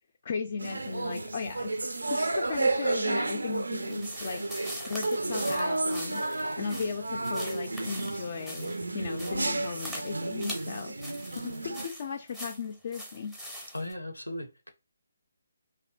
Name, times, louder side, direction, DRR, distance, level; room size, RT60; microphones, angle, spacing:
voice 1, 0.2-1.7 2.1-4.4 4.9-10.9 11.4-13.3, left 5 dB, 40° left, 0.3 m, -36 dB
sound 1, 0.6-11.9, right 2 dB, 70° right, 0.3 m, -32 dB
sound 2, 3.8-13.9, equal, ahead, 0.6 m, -43 dB
voice 2, 5.2-5.5 13.7-14.7, left 1 dB, 90° left, 0.5 m, -37 dB
2.6 x 2.1 x 2.2 m
figure-of-eight pair, 145°, 0 cm